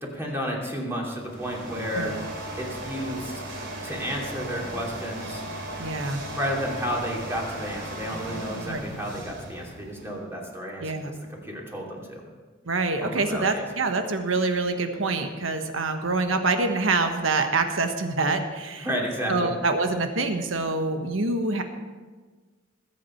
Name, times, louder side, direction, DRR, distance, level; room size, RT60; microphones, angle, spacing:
voice 1, 0.0-2.1 2.5-3.4 3.8-5.4 6.3-10.8 11.3-12.2 13.0-13.6 18.8-19.5, equal, 15° right, -2 dB, 2.9 m, -32 dB
sound 1, 1.1-10.3, right 1 dB, 60° right, 3.0 m, -37 dB
voice 2, 5.8-6.2 8.6-8.8 10.8-11.1 12.6-18.9 19.3-21.6, right 3 dB, 85° right, 6 dB, 1.3 m, -26 dB
20.5 x 8.6 x 4.5 m, 1.4 s
head